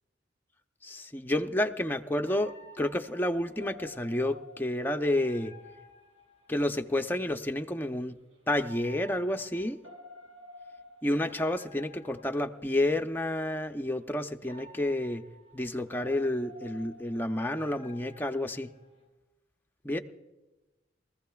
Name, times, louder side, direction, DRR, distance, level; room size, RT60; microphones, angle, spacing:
voice 1, 0.8-5.5 6.5-8.1 8.5-9.8 11.0-15.2 15.5-18.7 19.8-20.0, left 1 dB, 10° left, 5 dB, 0.6 m, -30 dB
sound 1, 2.3-6.9 8.5-13.1 14.4-19.0, equal, 85° right, 6.0 m, -52 dB
23.5 x 15.0 x 2.3 m, 1.1 s
head